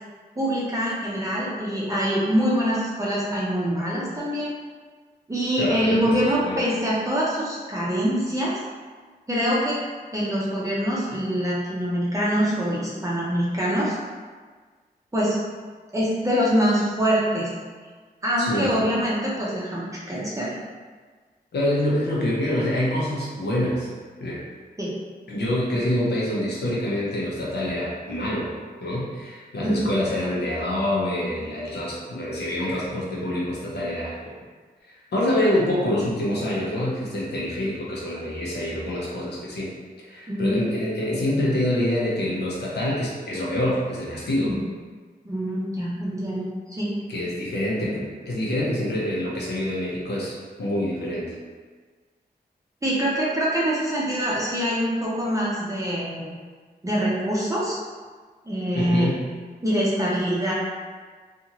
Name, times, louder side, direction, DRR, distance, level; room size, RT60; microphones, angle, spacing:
voice 1, 0.4-4.5 5.3-8.6 9.3-9.8 10.1-14.0 15.1-15.4 15.9-17.5 18.2-20.5 24.8-24.9 29.6-29.9 40.3-40.7 44.4-44.6 45.2-46.9 47.8-47.9 52.8-56.3 56.8-57.8 58.5-59.2 59.6-60.5, equal, 20° right, -7 dB, 0.6 m, -24 dB
voice 2, 5.6-6.1 6.4-6.6 18.4-18.9 21.5-23.9 24.2-24.4 25.3-28.5 28.8-34.2 34.9-39.7 40.1-44.6 47.1-51.3 58.7-59.2, left 1 dB, 85° left, -5 dB, 0.8 m, -26 dB
2.6 x 2.5 x 2.8 m, 1.5 s
wide cardioid pair, 95°, 17 cm